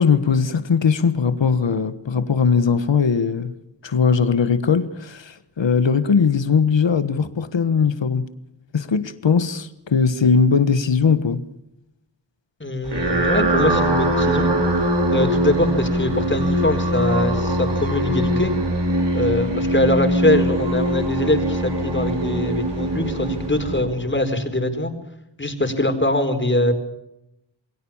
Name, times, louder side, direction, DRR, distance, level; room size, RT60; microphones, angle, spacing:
voice 1, 0.0-3.5 3.8-8.2 8.7-11.4, left 6 dB, 80° left, 1.5 m, -19 dB
voice 2, 12.6-14.5 15.1-18.5 19.1-24.9 25.4-26.7, left 1 dB, 25° left, 4.5 m, -22 dB
sound 1, 12.8-24.3, right 1 dB, 70° right, 5.7 m, -22 dB
28.0 x 22.0 x 7.2 m
wide cardioid pair, 95°, 44 cm